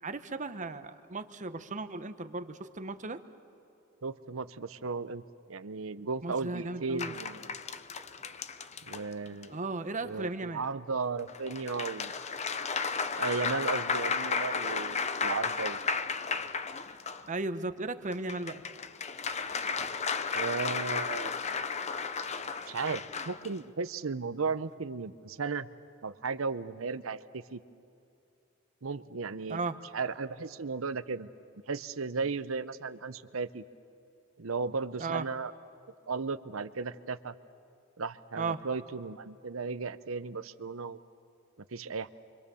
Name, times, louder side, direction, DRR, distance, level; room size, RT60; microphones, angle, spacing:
voice 1, 0.0-3.2 6.2-7.1 9.5-10.6 17.3-18.6 29.5-29.7 35.0-35.2 38.4-38.6, right 3 dB, 40° right, 10 dB, 1.0 m, -35 dB
voice 2, 4.0-5.2 5.5-7.6 8.8-9.6 10.0-12.1 13.2-15.8 20.3-21.3 22.7-25.7 26.0-27.6 28.8-29.6 29.9-31.3 31.7-33.6 34.4-35.5 36.1-37.3 38.0-41.0 41.7-42.1, right 4 dB, 80° right, 13 dB, 0.8 m, -35 dB
sound 1, 7.0-9.5 11.3-17.3 18.1-23.5, left 5 dB, 35° left, 0.7 m, -34 dB
29.0 x 25.0 x 7.0 m, 2.7 s
head